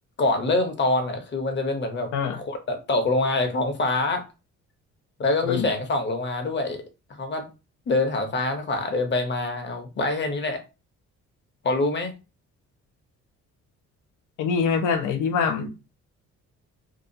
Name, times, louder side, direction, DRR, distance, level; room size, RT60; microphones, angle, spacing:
voice 1, 0.2-4.2 5.2-6.8 7.1-7.5 7.9-10.6 11.6-12.2, left 2 dB, 40° left, 0.8 m, -25 dB
voice 2, 14.4-15.8, left 6 dB, 80° left, 0.6 m, -24 dB
2.7 x 2.4 x 2.6 m
cardioid pair, 90°, 30 cm